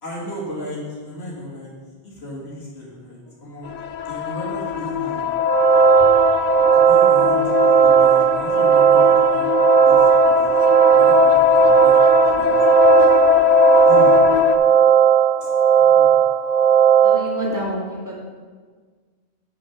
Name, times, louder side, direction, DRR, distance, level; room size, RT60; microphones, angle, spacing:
voice 1, 0.0-1.7 2.0-3.7 4.1-5.2 6.0-6.1 6.9-7.5 7.8-9.5 9.8-10.0 10.2-10.4 10.9-12.5 13.8-14.2 15.4-15.5 15.7-16.1, equal, 70° left, -5 dB, 2.2 m, -34 dB
sound 1, 3.7-14.6, left 10 dB, 55° left, 0.5 m, -20 dB
sound 2, 5.4-17.2, right 9 dB, 45° right, 0.7 m, -15 dB
voice 2, 17.0-18.2, right 1 dB, 15° right, -5 dB, 2.2 m, -28 dB
7.1 x 6.4 x 5.8 m, 1.5 s
omnidirectional pair, 1.1 m